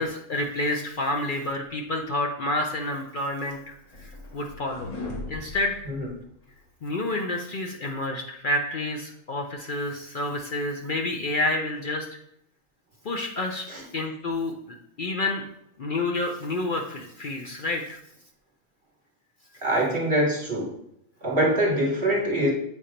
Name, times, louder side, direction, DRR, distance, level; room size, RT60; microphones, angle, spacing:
voice 1, 0.0-4.9 5.3-5.8 6.8-12.1 13.0-13.7 13.9-15.4 15.8-18.0, left 2 dB, 55° left, 2 dB, 0.5 m, -29 dB
sound 1, 3.1-6.6, left 2 dB, 30° left, 0.9 m, -40 dB
voice 2, 19.6-20.7 21.2-22.5, right 1 dB, 45° right, -2 dB, 1.4 m, -24 dB
8.2 x 2.9 x 5.0 m, 0.77 s
omnidirectional pair, 1.4 m